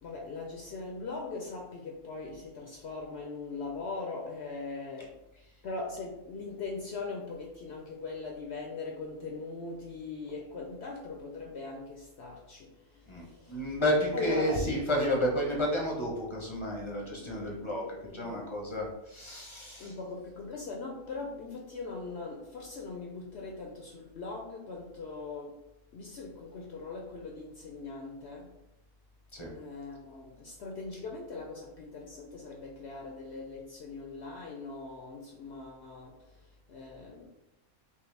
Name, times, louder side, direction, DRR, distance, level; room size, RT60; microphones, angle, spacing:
voice 1, 0.0-5.1 5.6-13.7 14.1-14.7 17.1-18.5 19.8-25.5 25.9-28.5 29.5-37.3, left 3 dB, 60° left, 0 dB, 0.7 m, -40 dB
voice 2, 13.1-17.8 18.1-19.9 29.3-29.5, equal, 30° left, -2 dB, 0.6 m, -31 dB
5.5 x 2.1 x 3.2 m, 0.89 s
omnidirectional pair, 1.5 m